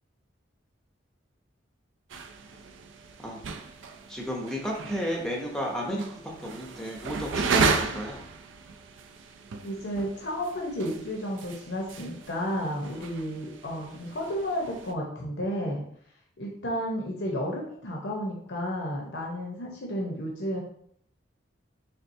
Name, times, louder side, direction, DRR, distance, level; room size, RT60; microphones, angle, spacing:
sound 1, 2.1-14.9, right 4 dB, 80° right, 0.4 m, -34 dB
voice 1, 4.1-8.2, equal, 5° left, -1 dB, 0.6 m, -32 dB
voice 2, 9.6-15.8 16.4-20.6, equal, 65° left, -1 dB, 0.7 m, -32 dB
4.3 x 3.3 x 2.6 m, 0.64 s
head